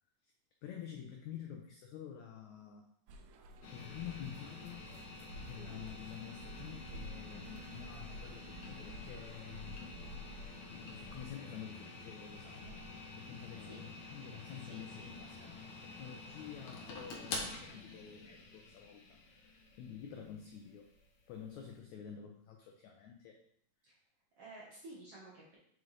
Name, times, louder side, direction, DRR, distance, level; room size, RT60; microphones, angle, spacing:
voice 1, 0.6-2.9 3.7-4.9 5.4-10.0 10.4-12.8 13.1-20.9 21.3-23.4, left 9 dB, 90° left, 2 dB, 1.6 m, -49 dB
sound 1, 3.1-11.3, equal, 80° right, 1.9 m, -51 dB
sound 2, 3.6-21.7, left 3 dB, 75° left, 1.3 m, -48 dB
voice 2, 14.5-15.1 23.8-24.0 24.3-25.6, right 2 dB, 60° right, -5 dB, 1.6 m, -53 dB
6.2 x 5.4 x 3.2 m, 0.67 s
omnidirectional pair, 4.1 m